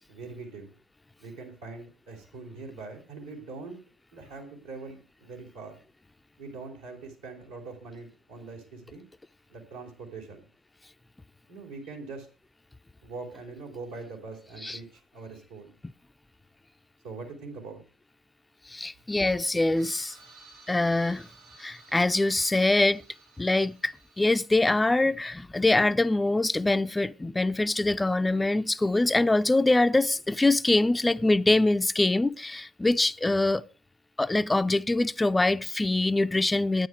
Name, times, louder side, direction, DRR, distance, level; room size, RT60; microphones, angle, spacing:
voice 1, 0.1-0.7 1.2-3.8 4.1-5.8 6.4-9.0 9.5-10.5 11.5-12.3 13.0-15.7 17.0-17.8, right 3 dB, 85° right, 3.7 m, -42 dB
voice 2, 18.7-20.2 20.7-21.2 21.6-23.0 23.4-33.6 34.2-36.9, left 2 dB, 15° left, 0.4 m, -24 dB
sound 1, 19.8-25.3, right 3 dB, 65° right, 6.2 m, -55 dB
10.5 x 9.8 x 4.8 m
hypercardioid pair, 55°, 0 cm